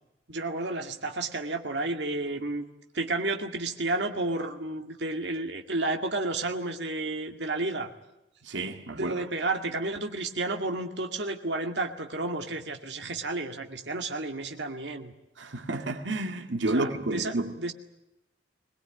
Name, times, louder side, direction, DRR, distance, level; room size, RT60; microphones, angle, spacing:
voice 1, 0.3-2.6 2.9-7.9 8.9-15.1 16.7-17.7, right 2 dB, 70° right, 2.1 m, -31 dB
voice 2, 8.5-9.2 15.4-17.5, right 2 dB, 90° right, 2.1 m, -30 dB
22.5 x 20.5 x 9.2 m
head